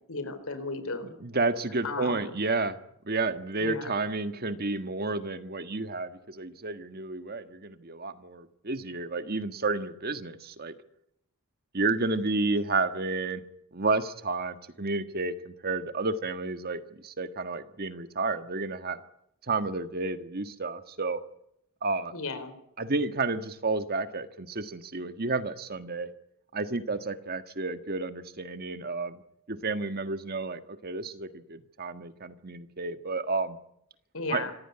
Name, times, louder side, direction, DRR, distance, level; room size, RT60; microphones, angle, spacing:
voice 1, 0.1-1.1 1.8-2.3 3.6-3.9 22.1-22.5 34.1-34.5, left 3 dB, 75° left, 11 dB, 4.4 m, -34 dB
voice 2, 1.2-2.8 3.0-10.7 11.7-13.4 13.7-19.0 19.5-21.2 21.8-22.1 22.8-26.1 26.5-29.2 29.5-33.6 34.3-34.5, right 3 dB, 45° right, 10 dB, 1.5 m, -31 dB
26.0 x 16.0 x 9.9 m, 0.77 s
head